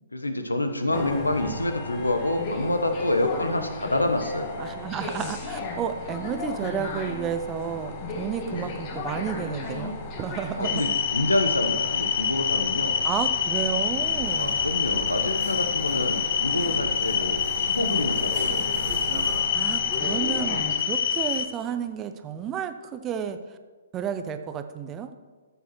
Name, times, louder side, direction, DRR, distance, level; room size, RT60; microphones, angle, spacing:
voice 1, 0.1-4.5 8.5-8.7 10.6-13.0 14.3-18.7, left 1 dB, 85° left, 7 dB, 1.0 m, -27 dB
sound 1, 0.9-20.7, left 3 dB, 30° left, 1.2 m, -36 dB
voice 2, 4.6-10.8 13.0-14.7 19.5-23.4 23.9-25.1, right 8 dB, 20° right, 9 dB, 0.5 m, -32 dB
sound 2, 10.6-21.4, left 7 dB, 50° left, 0.7 m, -26 dB
sound 3, 14.0-19.4, right 2 dB, 45° right, 2.0 m, -39 dB
13.5 x 7.0 x 3.1 m, 1.4 s
figure-of-eight pair, 125°, 0 cm